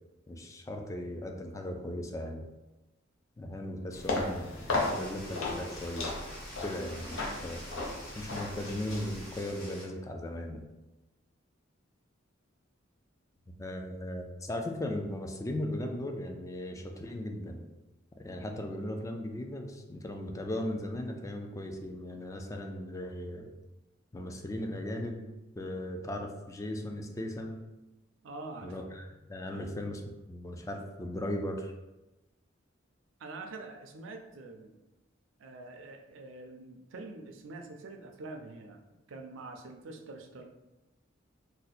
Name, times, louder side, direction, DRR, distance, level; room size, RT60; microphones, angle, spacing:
voice 1, 0.3-2.5 3.4-6.2 6.6-7.6 8.2-10.6 13.5-17.7 18.2-23.5 24.1-27.6 28.6-30.0 30.3-31.7, left 1 dB, 15° left, 3 dB, 0.3 m, -37 dB
sound 1, 3.9-9.5, left 2 dB, 85° left, 0.7 m, -36 dB
sound 2, 4.7-9.8, equal, 50° left, 1.3 m, -48 dB
voice 2, 28.2-28.7 29.5-29.7 33.2-34.7 35.4-38.8 39.1-40.4, right 3 dB, 70° right, 4 dB, 0.4 m, -45 dB
2.7 x 2.1 x 4.0 m, 1.0 s
head